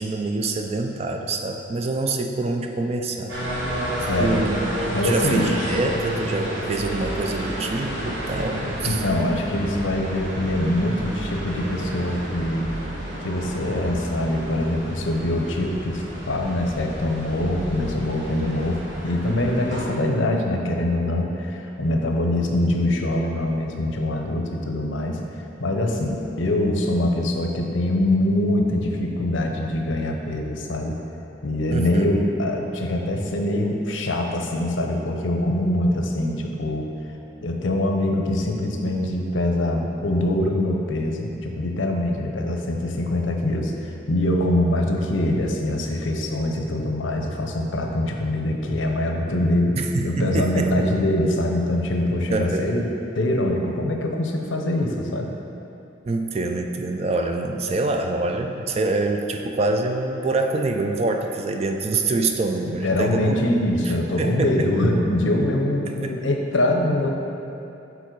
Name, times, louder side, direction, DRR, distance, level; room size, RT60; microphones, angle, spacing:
voice 1, 0.0-3.3 4.0-4.7 5.0-9.0 31.7-32.2 49.8-50.9 52.3-52.7 56.1-63.4 63.9-64.7 65.9-66.2, right 2 dB, 30° right, 4 dB, 0.3 m, -25 dB
sound 1, 3.3-19.8, right 1 dB, 65° right, 1.4 m, -31 dB
voice 2, 4.1-4.5 4.9-5.6 8.6-12.7 13.2-25.2 25.6-31.0 31.4-36.9 37.4-49.8 50.0-52.8 53.1-55.3 62.6-67.1, left 1 dB, 75° left, 2 dB, 0.7 m, -23 dB
sound 2, 5.4-5.9, left 1 dB, 20° left, 1.3 m, -36 dB
7.1 x 4.0 x 4.6 m, 2.9 s
head